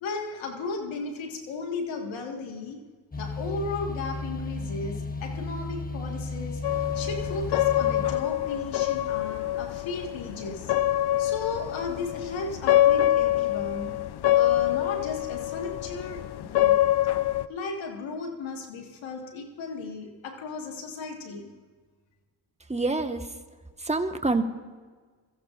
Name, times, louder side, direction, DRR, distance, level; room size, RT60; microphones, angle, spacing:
voice 1, 0.0-2.8 3.2-6.6 6.9-10.7 11.2-14.0 14.3-16.8 17.5-21.5, left 4 dB, 90° left, 3 dB, 1.8 m, -35 dB
sound 1, 3.1-8.2, left 3 dB, 20° left, 1.2 m, -34 dB
sound 2, 6.6-17.5, left 13 dB, 60° left, 0.6 m, -25 dB
voice 2, 22.7-23.2 23.9-24.4, right 3 dB, 15° right, 6 dB, 1.4 m, -26 dB
22.0 x 15.0 x 2.5 m, 1.4 s
supercardioid pair, 45°, 44 cm